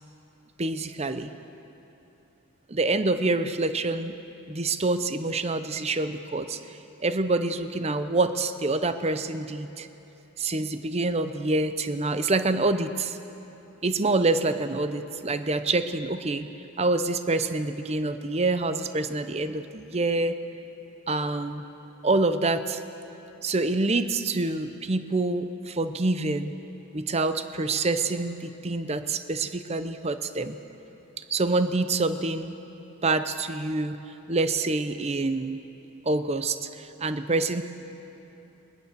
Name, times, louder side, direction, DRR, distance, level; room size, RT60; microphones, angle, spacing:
voice 1, 0.6-1.3 2.7-4.1 4.5-6.6 7.0-9.9 10.4-13.2 13.8-16.5 16.8-20.4 21.1-21.7 22.0-22.8 23.4-26.6 26.9-30.6 31.3-32.5 33.0-34.0 34.3-35.6 36.0-37.6, right 2 dB, 30° right, 10 dB, 0.7 m, -26 dB
21.0 x 19.0 x 6.8 m, 2.9 s
head